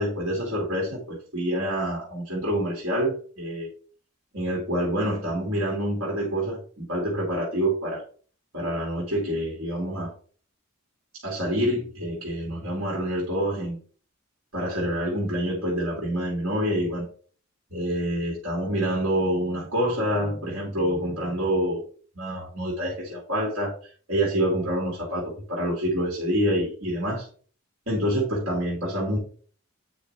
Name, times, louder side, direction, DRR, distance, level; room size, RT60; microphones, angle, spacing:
voice 1, 0.0-3.7 4.3-8.0 8.5-10.1 11.2-13.8 14.5-17.1 17.7-21.8 22.2-27.3 27.9-29.2, equal, 75° right, -3 dB, 2.2 m, -27 dB
8.7 x 5.0 x 3.2 m, 0.43 s
head